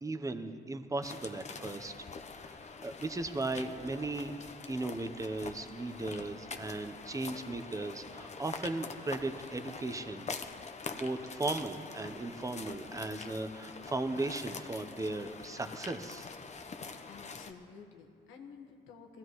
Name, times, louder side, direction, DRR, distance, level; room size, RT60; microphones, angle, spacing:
voice 1, 0.0-1.9 2.3-4.3 4.7-10.3 10.9-16.3, right 2 dB, 15° right, 8 dB, 0.9 m, -37 dB
sound 1, 1.0-17.5, left 4 dB, 35° left, 0.9 m, -45 dB
voice 2, 16.5-19.2, left 5 dB, 85° left, 2 dB, 1.5 m, -53 dB
21.0 x 15.5 x 3.2 m, 2.4 s
cardioid pair, 90°, 20 cm